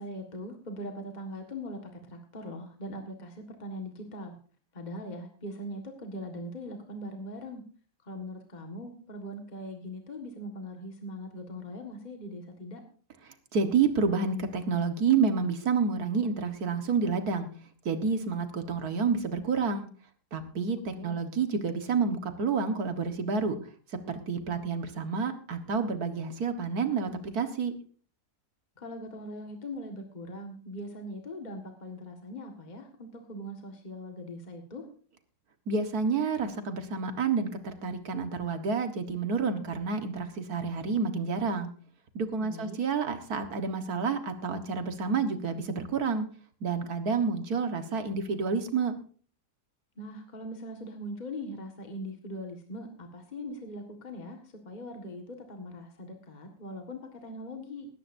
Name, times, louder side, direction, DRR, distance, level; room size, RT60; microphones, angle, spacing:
voice 1, 0.0-4.4 4.7-7.6 8.0-12.8 20.9-21.2 28.8-34.9 42.4-42.8 50.0-57.9, left 1 dB, 30° left, 3 dB, 1.8 m, -41 dB
voice 2, 13.5-17.5 17.9-19.9 20.3-23.6 24.1-27.7 35.7-41.7 42.2-46.3 46.6-48.9, right 5 dB, 70° right, 8 dB, 1.9 m, -29 dB
19.5 x 14.0 x 2.7 m, 0.41 s
omnidirectional pair, 1.7 m